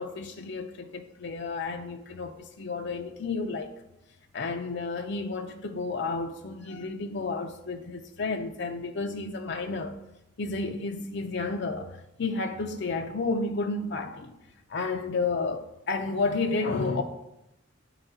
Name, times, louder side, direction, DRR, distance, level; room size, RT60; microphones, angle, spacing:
voice 1, 0.0-3.7 4.3-10.0 10.4-14.4 14.7-17.0, left 3 dB, 55° left, 0.5 m, -31 dB
8.9 x 4.0 x 4.4 m
head